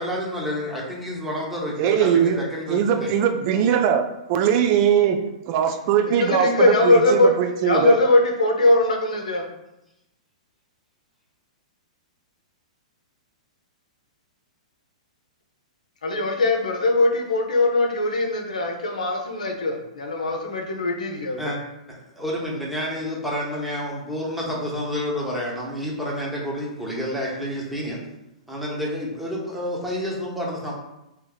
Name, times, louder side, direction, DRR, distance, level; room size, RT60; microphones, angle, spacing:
voice 1, 0.0-3.2 21.4-21.6 22.1-28.0 28.5-30.7, equal, ahead, -4 dB, 1.1 m, -29 dB
voice 2, 1.8-2.4 2.7-5.2 5.5-8.0, right 8 dB, 45° right, 7 dB, 0.4 m, -21 dB
voice 3, 6.1-7.3 7.6-9.4 16.0-21.5, left 2 dB, 85° left, 2 dB, 0.7 m, -21 dB
3.0 x 3.0 x 3.8 m, 0.91 s
hypercardioid pair, 120°, 4 cm